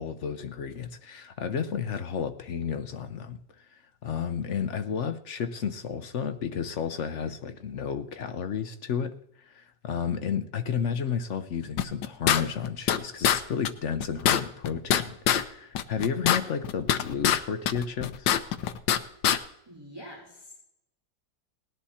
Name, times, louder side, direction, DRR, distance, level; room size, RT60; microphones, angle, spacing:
voice 1, 0.0-18.3, left 7 dB, 60° left, 0.7 m, -32 dB
sound 1, 11.8-13.0 13.2-13.4 13.7-13.8 14.0-15.4 15.8-17.4 17.7-19.0 19.2-19.4, left 10 dB, 75° left, 1.4 m, -23 dB
voice 2, 19.7-20.5, equal, 10° right, 4.0 m, -45 dB
18.5 x 10.5 x 4.3 m
omnidirectional pair, 2.0 m